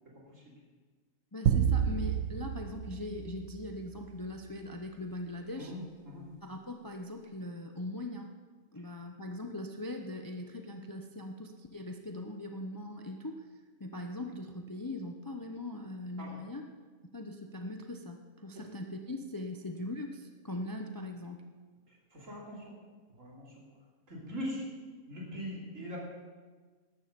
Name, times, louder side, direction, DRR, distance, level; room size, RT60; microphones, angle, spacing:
voice 1, 1.3-5.7 6.4-8.3 8.7-13.5 13.8-16.7 17.1-21.4, left 1 dB, 20° left, 4 dB, 0.6 m, -40 dB
sound 1, 1.5-4.1, right 8 dB, 85° right, 1.2 m, -30 dB
voice 2, 5.6-6.2 16.2-16.3 22.1-22.7 23.2-23.6 24.1-24.7 25.1-26.0, equal, 70° right, -4 dB, 3.6 m, -41 dB
13.5 x 11.5 x 5.3 m, 1.4 s
omnidirectional pair, 1.4 m